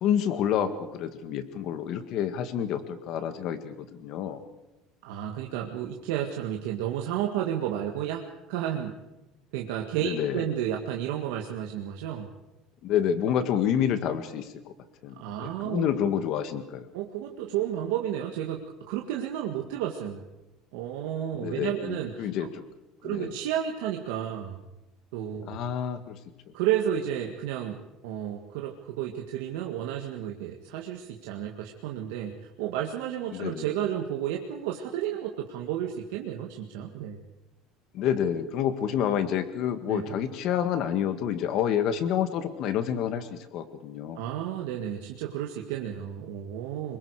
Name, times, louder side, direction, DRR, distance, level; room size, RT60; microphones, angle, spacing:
voice 1, 0.0-4.4 10.0-10.4 12.8-14.5 15.0-16.9 21.4-22.6 23.0-23.3 25.5-26.2 33.3-33.6 37.9-44.2, left 9 dB, 50° left, 10 dB, 1.8 m, -28 dB
voice 2, 5.0-9.0 9.5-12.3 15.2-15.9 16.9-20.2 20.7-22.5 23.0-24.6 25.1-25.6 26.5-27.8 28.0-32.3 32.6-37.2 39.9-40.2 44.2-47.0, right 10 dB, 90° right, 1 dB, 1.9 m, -32 dB
25.5 x 23.0 x 5.0 m, 0.97 s
cardioid pair, 165°, 0 cm